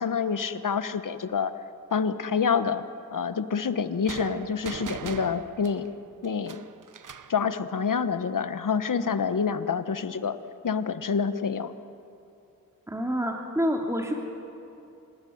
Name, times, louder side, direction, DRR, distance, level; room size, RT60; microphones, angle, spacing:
voice 1, 0.0-1.5 1.9-2.8 3.1-5.9 6.2-6.6 7.3-10.4 10.6-11.7, left 6 dB, 60° left, 11 dB, 1.4 m, -27 dB
sound 1, 4.1-7.4, right 7 dB, 55° right, 1.2 m, -40 dB
voice 2, 12.9-14.1, equal, 10° right, 1 dB, 3.1 m, -27 dB
26.0 x 17.0 x 9.5 m, 2.7 s
supercardioid pair, 45°, 37 cm